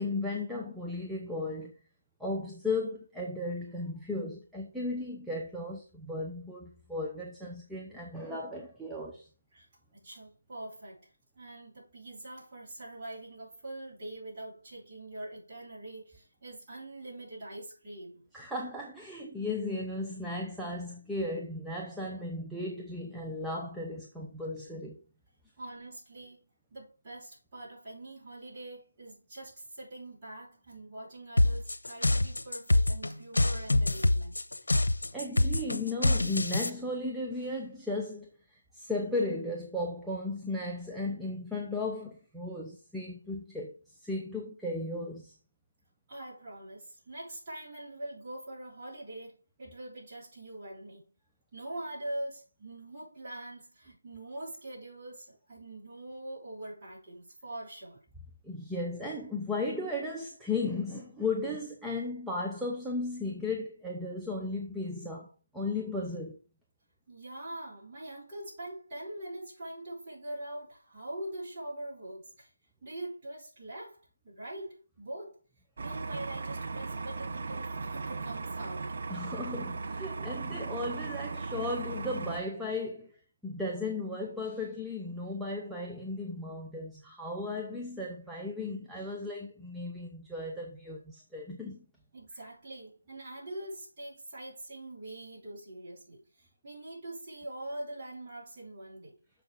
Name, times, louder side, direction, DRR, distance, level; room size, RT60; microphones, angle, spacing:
voice 1, 0.0-1.7 2.2-9.3 18.3-25.0 35.1-43.7 44.0-45.3 58.4-65.3 65.5-66.4 79.1-83.2 83.4-91.8, left 2 dB, ahead, 0.6 m, -35 dB
voice 2, 9.9-11.1 11.3-18.2 25.6-34.4 46.1-51.0 51.5-58.0 67.1-72.5 72.8-74.0 74.2-75.4 75.8-78.9 92.1-99.2, right 1 dB, 25° right, 4.9 m, -43 dB
sound 1, 31.4-36.7, left 2 dB, 90° left, 0.8 m, -26 dB
sound 2, 75.8-82.4, right 3 dB, 45° right, 1.0 m, -37 dB
7.0 x 5.8 x 4.9 m
figure-of-eight pair, 165°, 0 cm